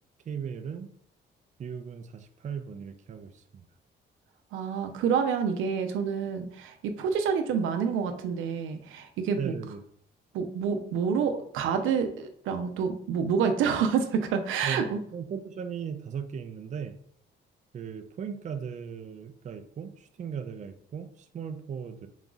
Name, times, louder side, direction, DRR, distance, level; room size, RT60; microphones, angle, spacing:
voice 1, 0.3-0.9 1.6-3.6 9.4-9.8 14.6-16.9 17.7-22.1, right 7 dB, 40° right, 7 dB, 0.4 m, -37 dB
voice 2, 4.5-9.5 10.3-15.0, right 6 dB, 85° right, 6 dB, 0.6 m, -28 dB
4.0 x 2.3 x 3.8 m, 0.63 s
cardioid pair, 90°, 20 cm